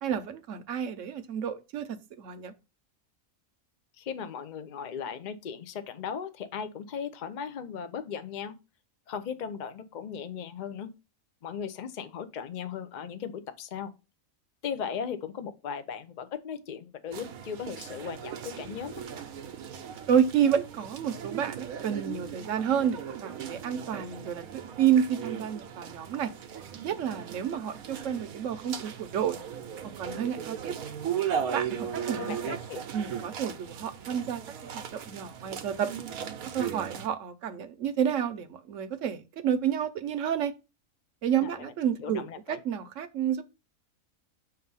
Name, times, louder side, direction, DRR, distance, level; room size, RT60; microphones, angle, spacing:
voice 1, 0.0-2.5 20.1-26.3 26.8-29.4 30.0-30.7 31.5-32.4 32.9-34.4 34.7-35.9 36.5-40.5 41.2-43.4, right 8 dB, 65° right, 1.0 m, -30 dB
voice 2, 4.0-8.5 9.1-10.9 11.4-13.9 14.6-19.0 31.9-32.8 41.4-41.7 42.0-42.6, left 7 dB, 45° left, 0.6 m, -37 dB
sound 1, 17.1-37.1, right 8 dB, 90° right, 1.1 m, -37 dB
6.6 x 2.6 x 5.5 m
omnidirectional pair, 1.5 m